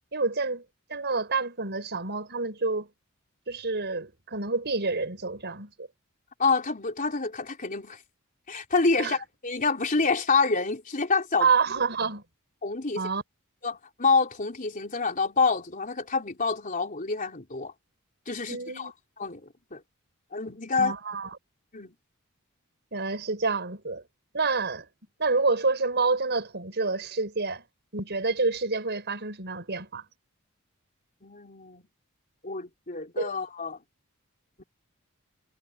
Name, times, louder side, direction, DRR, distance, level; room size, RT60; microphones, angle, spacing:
voice 1, 0.1-0.6 0.9-2.9 3.5-5.9 9.0-9.1 11.4-12.2 12.9-13.2 18.5-18.9 20.8-21.3 22.9-24.0 24.3-24.9 25.2-27.6 27.9-30.0 33.2-33.3, right 4 dB, 50° right, 6.2 m, -28 dB
voice 2, 6.4-8.0 8.5-11.5 12.6-13.0 13.6-17.7 18.3-18.9 19.2-19.8 20.3-20.9 21.7-21.9 31.2-31.8 32.4-33.8 34.6-34.7, left 4 dB, 40° left, 3.9 m, -27 dB
head